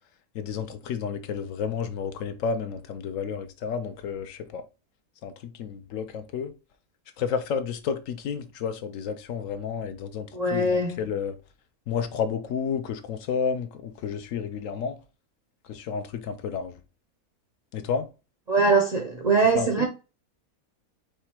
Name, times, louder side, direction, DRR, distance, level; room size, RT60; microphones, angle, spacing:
voice 1, 0.3-4.6 5.2-6.5 7.2-11.4 11.9-15.0 15.6-16.8 17.7-18.1 19.5-19.9, left 6 dB, 70° left, 0.9 m, -31 dB
voice 2, 10.3-11.0 18.5-19.9, right 3 dB, 50° right, 0.5 m, -22 dB
4.9 x 2.2 x 4.3 m
omnidirectional pair, 1.5 m